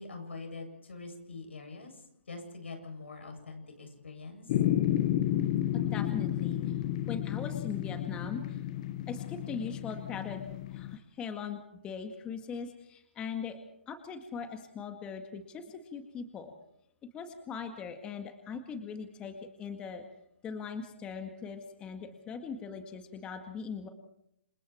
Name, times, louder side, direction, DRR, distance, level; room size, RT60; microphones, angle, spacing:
voice 1, 0.0-4.5, left 3 dB, 85° left, 4 dB, 7.8 m, -44 dB
sound 1, 4.5-11.0, left 12 dB, 40° left, 1.4 m, -31 dB
voice 2, 5.7-6.7 7.1-8.6 9.1-10.4 10.7-13.6 13.9-16.5 17.1-20.0 20.4-23.9, left 6 dB, 15° left, 6 dB, 2.0 m, -40 dB
28.0 x 24.0 x 4.6 m, 0.76 s
hypercardioid pair, 150°, 6 cm